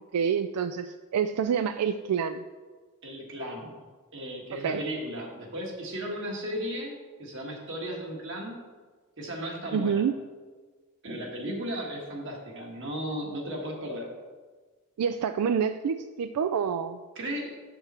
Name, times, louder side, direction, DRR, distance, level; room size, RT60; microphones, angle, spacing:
voice 1, 0.1-2.4 4.6-4.8 9.7-10.2 15.0-17.0, right 7 dB, 90° right, 9 dB, 0.3 m, -27 dB
voice 2, 3.0-3.8 4.1-8.6 9.2-10.0 11.0-14.1 17.1-17.6, equal, 55° right, 0 dB, 1.6 m, -35 dB
7.2 x 6.9 x 4.3 m, 1.4 s
head